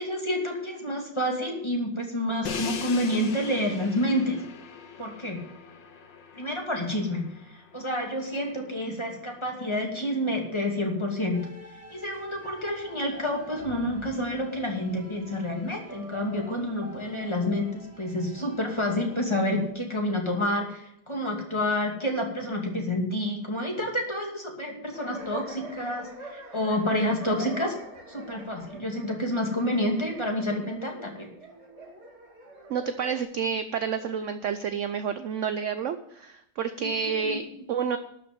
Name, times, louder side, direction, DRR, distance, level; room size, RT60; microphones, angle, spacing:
voice 1, 0.0-4.4 5.0-5.4 6.3-7.2 7.5-11.4 11.9-27.8 28.1-31.3 36.8-37.4, left 1 dB, 15° left, 0 dB, 2.5 m, -29 dB
Crash cymbal, 2.4-8.4, left 6 dB, 85° left, 1.9 m, -40 dB
sound 1, 11.3-19.7, left 1 dB, 10° right, 1.8 m, -47 dB
sound 2, 24.9-33.2, right 2 dB, 35° right, 2.3 m, -44 dB
voice 2, 32.7-38.0, right 6 dB, 65° right, 10 dB, 0.8 m, -29 dB
12.5 x 6.0 x 9.2 m, 0.76 s
omnidirectional pair, 1.9 m